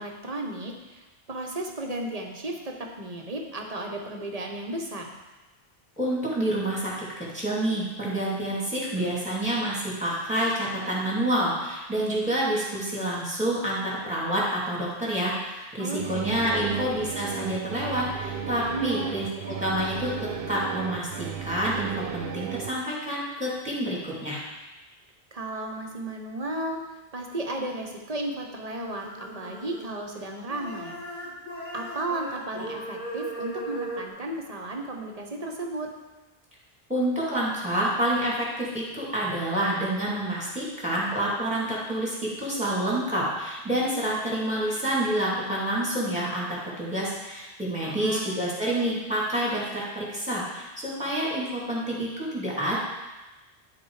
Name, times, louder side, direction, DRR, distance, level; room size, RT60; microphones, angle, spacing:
voice 1, 0.0-5.1 15.8-16.9 18.7-19.2 25.3-26.8 27.1-31.0 31.7-35.9 47.8-48.4, right 2 dB, 40° right, 1 dB, 1.0 m, -34 dB
voice 2, 6.0-19.3 19.6-24.4 36.9-52.8, right 1 dB, 5° right, -6 dB, 2.6 m, -28 dB
sound 1, 16.0-22.7, right 8 dB, 65° right, 0.8 m, -35 dB
sound 2, 28.8-30.2 30.5-34.1, right 1 dB, 50° left, 1.9 m, -37 dB
12.0 x 4.2 x 4.8 m, 1.1 s
omnidirectional pair, 1.0 m